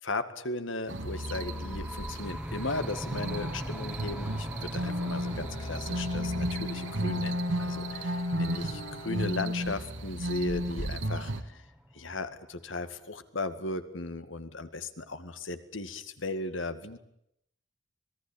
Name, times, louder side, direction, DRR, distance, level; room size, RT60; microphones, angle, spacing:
voice 1, 0.0-7.8 8.4-11.6 11.9-17.0, left 2 dB, 85° left, 10 dB, 2.1 m, -36 dB
sound 1, 0.9-12.3, equal, 5° right, 1.4 m, -42 dB
sound 2, 0.9-11.4, equal, 75° right, 2.1 m, -33 dB
Bowed string instrument, 5.2-10.1, left 2 dB, 30° left, 3.4 m, -47 dB
26.0 x 19.0 x 8.7 m, 0.77 s
head